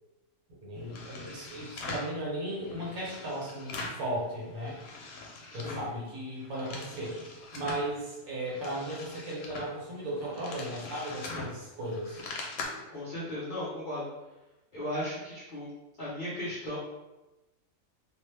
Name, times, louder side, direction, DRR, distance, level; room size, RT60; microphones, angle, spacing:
voice 1, 0.6-4.8 5.5-7.2 7.5-12.2, right 1 dB, 75° right, -5 dB, 1.4 m, -36 dB
sound 1, 0.8-2.2 2.6-4.1 4.4-5.9 6.3-7.9 8.4-12.6, left 3 dB, 75° left, 1.0 m, -42 dB
voice 2, 5.5-5.9 12.7-14.1 14.7-15.7 16.0-16.8, left 1 dB, 50° left, -10 dB, 0.6 m, -36 dB
2.9 x 2.1 x 3.1 m, 1.0 s
omnidirectional pair, 1.6 m